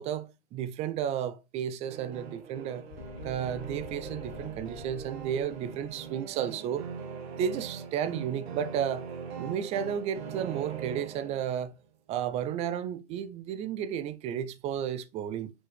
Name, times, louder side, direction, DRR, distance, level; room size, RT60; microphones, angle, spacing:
voice 1, 0.0-2.8 3.2-6.9 7.4-9.1 9.4-11.7 12.1-15.5, right 9 dB, 20° right, 0.5 m, -33 dB
sound 1, 1.9-11.7, right 6 dB, 55° right, 1.8 m, -41 dB
sound 2, 2.9-6.5, left 8 dB, 40° left, 0.7 m, -48 dB
5.7 x 5.5 x 4.7 m
hypercardioid pair, 120°, 36 cm